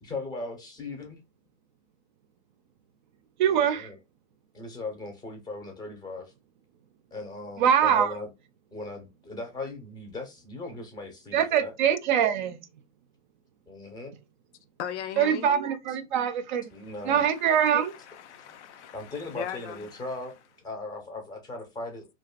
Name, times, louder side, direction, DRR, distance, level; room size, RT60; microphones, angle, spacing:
voice 1, 0.0-1.2 3.5-4.0 4.5-6.3 7.1-8.3 8.7-11.7 13.7-14.1 16.7-17.2 18.9-22.1, left 2 dB, 10° left, 0.5 m, -38 dB
voice 2, 3.4-3.9 7.6-8.2 11.3-12.7 15.2-16.7 17.0-17.9, right 8 dB, 45° right, 0.4 m, -23 dB
voice 3, 14.8-15.5 16.8-17.1 17.4-20.1, left 9 dB, 70° left, 0.5 m, -39 dB
2.4 x 2.3 x 2.3 m
hypercardioid pair, 130°, 35 cm